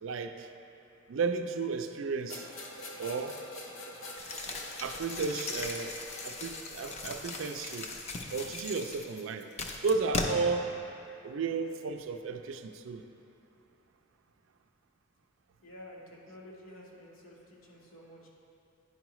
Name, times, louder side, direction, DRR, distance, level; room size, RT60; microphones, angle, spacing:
voice 1, 0.0-0.5 1.1-2.5 3.0-3.4 4.8-6.0 6.2-7.9 8.3-9.5 9.8-10.7 11.2-13.0, right 4 dB, 70° right, 7 dB, 0.4 m, -33 dB
sound 1, 2.3-7.6, left 2 dB, 70° left, 0.8 m, -46 dB
sound 2, 4.2-10.2, left 3 dB, 35° left, 0.5 m, -38 dB
voice 2, 15.6-18.3, left 1 dB, 90° left, -3 dB, 1.2 m, -50 dB
10.0 x 4.7 x 3.0 m, 2.8 s
head